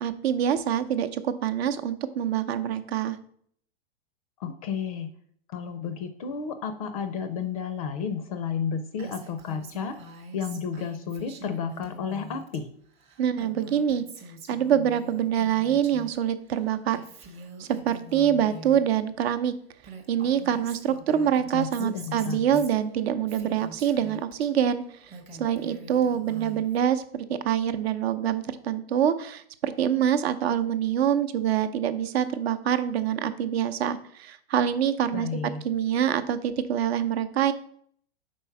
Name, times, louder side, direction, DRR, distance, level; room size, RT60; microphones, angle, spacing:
voice 1, 0.0-3.2 13.2-14.0 14.5-17.0 17.6-19.5 20.1-24.8 25.4-35.3 35.6-37.5, right 9 dB, 70° right, 11 dB, 0.7 m, -25 dB
voice 2, 4.4-5.1 5.5-10.0 10.3-12.7 21.5-22.6 35.1-35.6, left 6 dB, 35° left, 9 dB, 0.4 m, -32 dB
Female speech woman speaking, 9.0-12.6 12.9-16.2 16.4-18.8 19.5-19.6 19.8-24.5 24.9-26.8, right 2 dB, 20° right, 0.7 m, -44 dB
4.6 x 4.2 x 5.7 m, 0.63 s
supercardioid pair, 160°, 32 cm